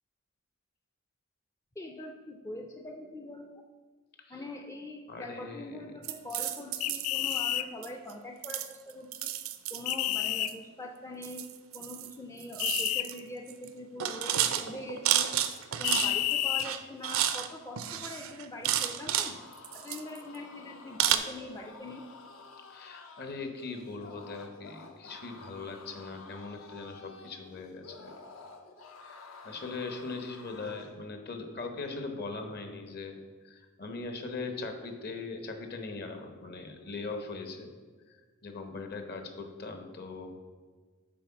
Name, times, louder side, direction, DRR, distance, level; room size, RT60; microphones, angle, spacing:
voice 1, 1.8-3.5 4.3-9.3 9.7-11.5 11.7-15.3 15.7-19.4 19.7-22.0, left 1 dB, 15° left, 2 dB, 0.4 m, -43 dB
voice 2, 5.1-5.8 22.7-28.1 29.0-33.1 33.4-37.7 38.4-40.4, left 3 dB, 50° left, 5 dB, 1.0 m, -40 dB
sound 1, 6.0-7.4 7.8-8.1 8.4-10.5 11.2-12.1 12.4-13.2 13.5-13.7 14.0-16.3 16.6-17.5 17.8-19.3 19.6-20.4 21.0-21.2, right 11 dB, 70° right, 0.5 m, -31 dB
sound 2, 6.8-7.7 9.9-10.5 12.6-13.0 15.8-16.7, left 13 dB, 90° left, 0.4 m, -29 dB
sound 3, 18.9-31.0, left 4 dB, 70° left, 0.9 m, -51 dB
7.6 x 4.5 x 5.8 m, 1.5 s
head